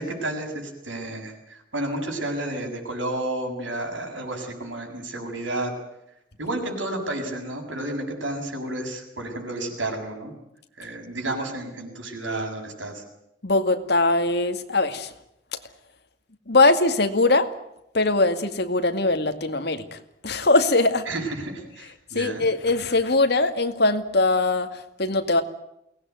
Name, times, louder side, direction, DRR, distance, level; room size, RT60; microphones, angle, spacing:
voice 1, 0.0-5.7 6.4-10.3 10.8-13.0 21.1-22.4, right 1 dB, 90° right, 3 dB, 7.2 m, -31 dB
voice 2, 13.4-15.1 15.5-15.6 16.5-17.5 17.9-21.1 22.1-25.4, left 2 dB, 60° left, 7 dB, 2.2 m, -21 dB
23.0 x 18.5 x 9.5 m, 0.82 s
head